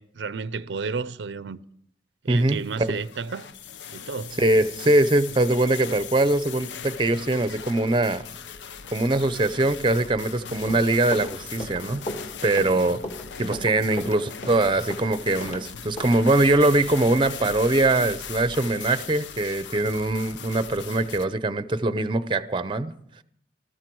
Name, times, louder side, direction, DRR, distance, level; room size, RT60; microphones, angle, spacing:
voice 1, 0.0-1.6 2.2-3.5 3.9-4.4, right 4 dB, 90° right, 0.6 m, -32 dB
voice 2, 2.3-2.9 4.4-8.2 8.9-12.1 12.4-13.0 13.4-22.9, right 2 dB, 30° right, 0.6 m, -22 dB
sound 1, 2.5-21.3, left 7 dB, 90° left, 0.6 m, -39 dB
Run, 10.5-15.6 16.0-16.1, equal, 40° left, 2.4 m, -35 dB
19.5 x 13.5 x 4.6 m
head